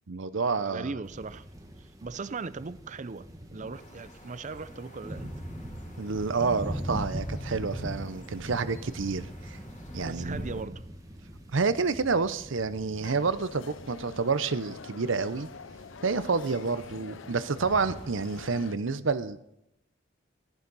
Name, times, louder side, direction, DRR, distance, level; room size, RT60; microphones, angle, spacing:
voice 1, 0.1-0.9 6.0-9.6 9.9-10.4 11.5-15.5 16.0-19.4, right 4 dB, 70° right, 0.8 m, -29 dB
voice 2, 0.6-1.4 1.8-5.4 10.0-10.8, right 4 dB, 40° right, 0.5 m, -39 dB
sound 1, 1.0-18.4, equal, 20° right, 1.4 m, -41 dB
sound 2, 3.7-10.6, left 1 dB, 40° left, 3.1 m, -53 dB
sound 3, 13.0-18.8, left 5 dB, 70° left, 0.6 m, -46 dB
13.5 x 11.5 x 4.1 m
head